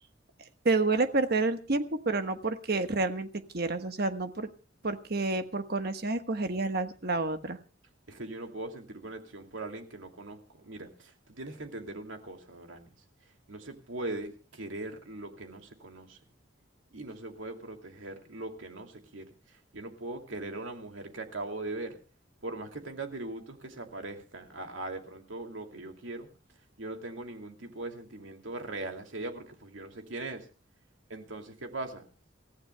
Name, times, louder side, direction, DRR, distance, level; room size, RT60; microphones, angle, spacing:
voice 1, 0.6-3.3 3.5-4.5 4.8-7.6, right 3 dB, 55° right, 1.3 m, -29 dB
voice 2, 8.1-12.9 13.5-16.2 16.9-22.0 22.4-26.3 26.8-30.5 31.1-32.1, right 2 dB, 80° right, 2.6 m, -40 dB
28.5 x 15.0 x 2.3 m
head